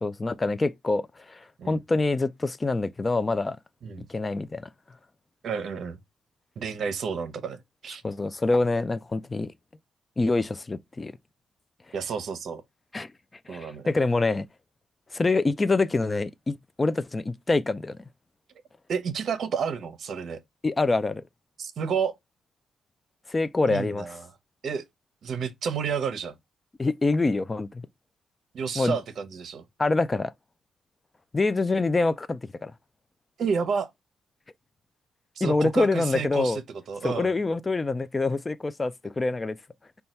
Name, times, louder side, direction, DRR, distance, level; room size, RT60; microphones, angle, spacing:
voice 1, 0.0-1.4 1.6-3.6 4.1-4.7 8.0-9.5 10.2-11.1 12.9-13.1 13.5-14.4 15.1-18.0 20.6-21.2 23.3-24.0 26.8-27.8 28.8-29.0 29.8-30.3 31.3-32.7 35.4-36.6 37.0-39.6, left 3 dB, 15° left, 0.3 m, -25 dB
voice 2, 5.4-6.0 6.6-8.0 11.9-12.6 13.5-13.9 18.9-20.4 21.6-22.1 23.7-24.3 24.6-24.8 25.2-26.3 28.5-29.6 33.4-33.9 35.4-37.3, right 6 dB, 50° right, 0.7 m, -30 dB
5.4 x 2.3 x 4.3 m
wide cardioid pair, 170°, 0 cm